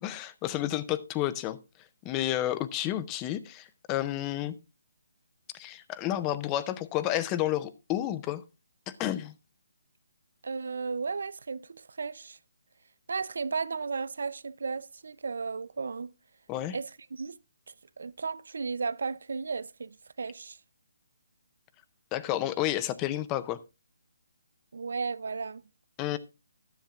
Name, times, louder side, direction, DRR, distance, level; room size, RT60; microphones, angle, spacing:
voice 1, 0.0-1.6 2.0-4.5 5.5-8.4 8.9-9.3 16.5-16.8 22.1-23.6 26.0-26.2, left 13 dB, 15° left, 0.5 m, -31 dB
voice 2, 10.4-12.4 13.1-16.1 16.7-17.4 17.7-20.6 24.7-25.6, right 4 dB, 65° right, 0.5 m, -34 dB
13.0 x 10.5 x 2.4 m
hypercardioid pair, 165°, 0 cm